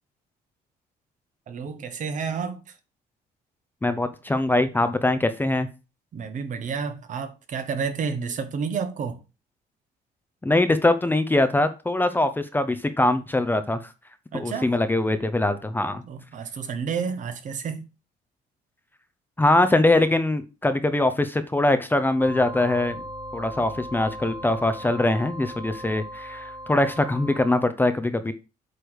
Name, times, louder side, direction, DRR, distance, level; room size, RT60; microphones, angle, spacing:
voice 1, 1.5-2.7 6.1-9.2 14.3-14.7 16.1-17.8, right 6 dB, 50° right, 1.2 m, -30 dB
voice 2, 3.8-5.7 10.4-13.9 14.3-16.0 19.4-23.0 23.3-28.3, left 2 dB, 10° left, 0.7 m, -22 dB
sound 1, 22.2-27.6, equal, 20° right, 1.3 m, -38 dB
8.1 x 3.3 x 6.2 m
cardioid pair, 110°, 17 cm